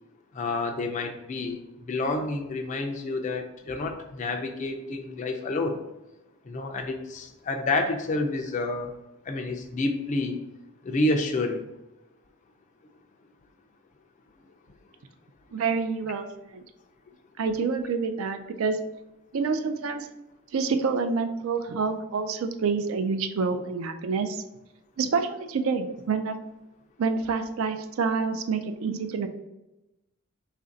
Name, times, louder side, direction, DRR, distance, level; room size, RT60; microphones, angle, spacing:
voice 1, 0.3-1.6 1.9-5.8 6.5-8.9 9.3-10.4 10.8-11.6, left 2 dB, 35° left, 4 dB, 0.3 m, -29 dB
voice 2, 15.5-16.3 16.5-16.6 17.4-18.8 19.3-20.1 20.5-24.4 25.0-26.4 27.0-29.3, right 5 dB, 70° right, 7 dB, 0.4 m, -27 dB
3.2 x 2.5 x 3.8 m, 0.97 s
head